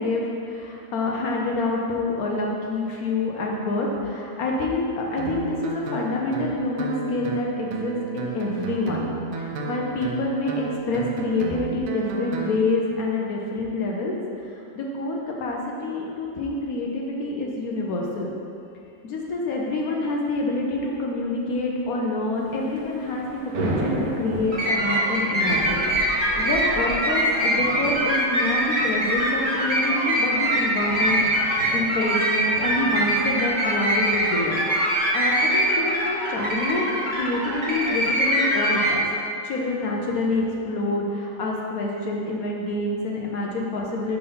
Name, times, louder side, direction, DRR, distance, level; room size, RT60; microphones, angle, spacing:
voice 1, 0.0-9.1 9.4-18.3 19.0-34.5 34.8-36.8 37.1-39.0 39.4-44.2, left 2 dB, 70° left, -1 dB, 0.8 m, -27 dB
Guitar, 5.2-12.6, right 4 dB, 80° right, 1.5 m, -32 dB
Thunder / Rain, 22.4-35.1, right 1 dB, 55° right, 1.2 m, -35 dB
sound 1, 24.5-39.0, right 1 dB, 35° right, 1.3 m, -23 dB
5.4 x 4.4 x 5.5 m, 2.6 s
omnidirectional pair, 2.3 m